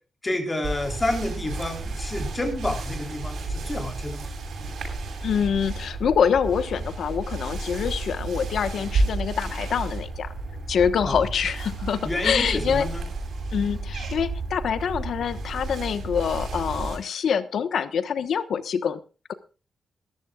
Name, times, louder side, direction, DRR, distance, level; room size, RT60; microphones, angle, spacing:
voice 1, 0.2-4.3 11.0-11.2 12.0-13.0, left 1 dB, 20° left, 4 dB, 3.5 m, -29 dB
sound 1, 0.6-17.0, right 3 dB, 70° right, 7.3 m, -31 dB
voice 2, 5.2-10.3 10.7-12.9 13.5-19.0, left 7 dB, 70° left, 12 dB, 1.2 m, -25 dB
20.5 x 14.0 x 2.4 m, 0.34 s
wide cardioid pair, 155°, 0 cm